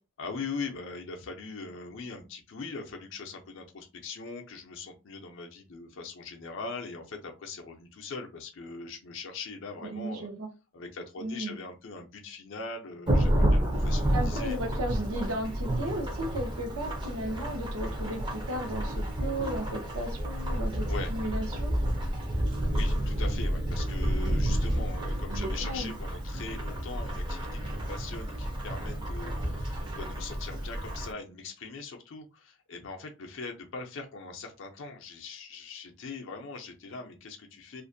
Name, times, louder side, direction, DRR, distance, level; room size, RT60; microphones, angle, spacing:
voice 1, 0.2-10.3 10.7-14.6 20.9-21.1 22.7-37.8, left 4 dB, 55° left, 0.5 m, -41 dB
voice 2, 9.8-10.5 11.2-11.6 14.1-21.7 25.3-25.9, right 1 dB, 75° right, 0.8 m, -35 dB
Thunderstorm / Rain, 13.1-31.1, equal, 20° right, 0.5 m, -30 dB
2.4 x 2.1 x 2.6 m
head